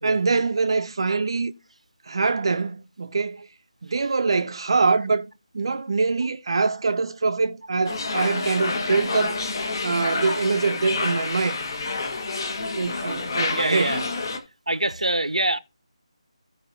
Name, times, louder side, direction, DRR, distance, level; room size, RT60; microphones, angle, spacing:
voice 1, 0.0-1.5 2.1-3.5 3.8-5.3 5.5-9.4 9.8-11.6 12.6-13.9, right 4 dB, 50° right, 0.6 m, -24 dB
sound 1, 7.9-14.4, left 3 dB, 40° left, 1.6 m, -28 dB
voice 2, 13.5-14.0 14.7-15.6, right 1 dB, 85° right, 0.8 m, -24 dB
16.0 x 5.3 x 2.8 m
figure-of-eight pair, 160°, 3 cm